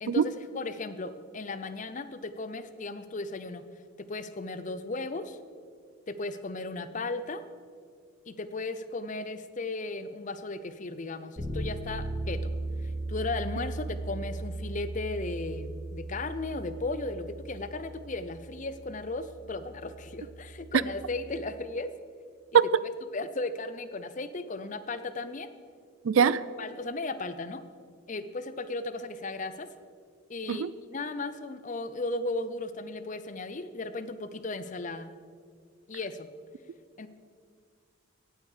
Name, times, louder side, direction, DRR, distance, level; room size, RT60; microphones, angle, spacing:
voice 1, 0.0-3.6 4.0-5.4 6.1-7.4 8.3-12.5 12.8-21.9 22.5-22.6 23.1-25.5 26.2-26.3 26.6-27.6 28.1-29.7 30.3-35.1 35.9-36.3 37.0-37.1, left 2 dB, 35° left, 12 dB, 0.5 m, -36 dB
Bass guitar, 11.4-21.2, right 2 dB, 25° right, 2.8 m, -38 dB
voice 2, 26.0-26.4 30.5-30.7, right 7 dB, 70° right, 18 dB, 0.4 m, -21 dB
17.5 x 8.2 x 4.9 m, 2.2 s
head